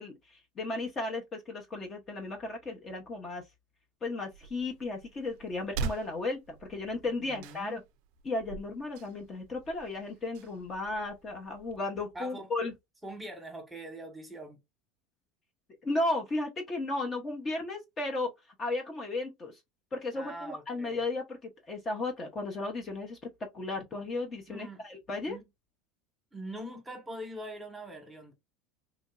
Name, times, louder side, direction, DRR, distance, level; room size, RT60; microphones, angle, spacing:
voice 1, 0.0-3.4 4.0-7.8 8.2-12.7 15.8-18.3 18.6-19.6 19.9-23.2 23.5-25.4, left 2 dB, 25° left, 0.7 m, -34 dB
sound 1, 4.3-11.8, right 5 dB, 70° right, 0.4 m, -43 dB
voice 2, 7.2-7.8 12.1-12.5 13.0-14.6 20.1-21.0 24.5-24.8 25.3-25.5 26.3-28.3, right 1 dB, 10° right, 1.1 m, -43 dB
2.9 x 2.5 x 2.3 m
supercardioid pair, 130°, 0 cm